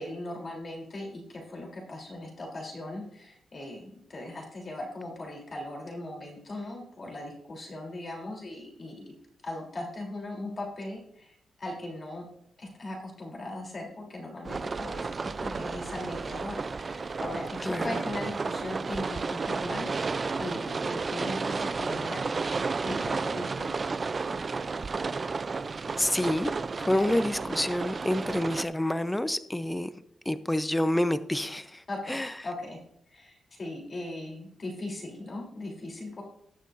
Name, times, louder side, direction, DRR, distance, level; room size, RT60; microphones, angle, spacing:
voice 1, 0.0-9.1 9.4-12.2 12.6-22.2 22.8-23.8 26.9-27.2 31.9-32.2 32.4-32.8 33.1-36.2, left 1 dB, 40° left, 0 dB, 3.2 m, -39 dB
sound 1, 14.4-28.6, right 4 dB, 35° right, 0.4 m, -32 dB
voice 2, 17.6-18.0 26.0-26.5 26.8-29.9 30.3-32.3, left 1 dB, 10° left, 13 dB, 0.6 m, -28 dB
18.5 x 6.6 x 2.6 m, 0.75 s
cardioid pair, 100°, 0 cm